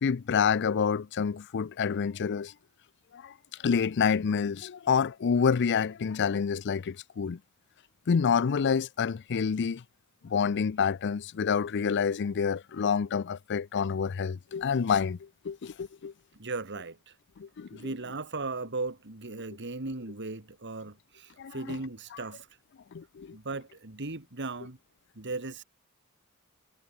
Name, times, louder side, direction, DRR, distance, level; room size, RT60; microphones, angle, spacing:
voice 1, 0.0-2.5 3.1-3.3 3.6-7.4 8.1-9.8 10.2-16.1 17.4-17.9 21.4-21.8 22.9-23.4, left 6 dB, 55° left, 0.5 m, -28 dB
voice 2, 16.3-17.2 17.7-22.5 23.3-24.8 25.2-25.6, right 3 dB, 55° right, 2.1 m, -37 dB
head